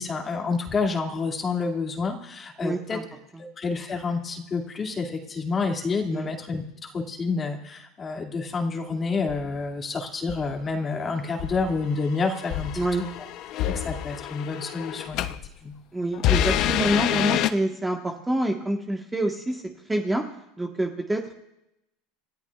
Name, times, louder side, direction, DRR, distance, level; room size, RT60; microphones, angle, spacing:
voice 1, 0.0-3.0 3.4-12.7 13.0-13.1 13.6-15.3 15.6-15.7, left 4 dB, 25° left, 2 dB, 2.2 m, -29 dB
voice 2, 2.6-3.0 3.3-3.4 6.1-6.3 12.8-13.0 15.9-19.6 19.9-20.2 20.6-21.3, right 1 dB, 10° right, 2 dB, 1.3 m, -27 dB
sound 1, 9.3-9.6 10.3-10.6 11.4-15.5 16.1-17.5, left 11 dB, 50° left, 0.7 m, -27 dB
29.0 x 13.5 x 2.4 m, 0.85 s
supercardioid pair, 120°, 0 cm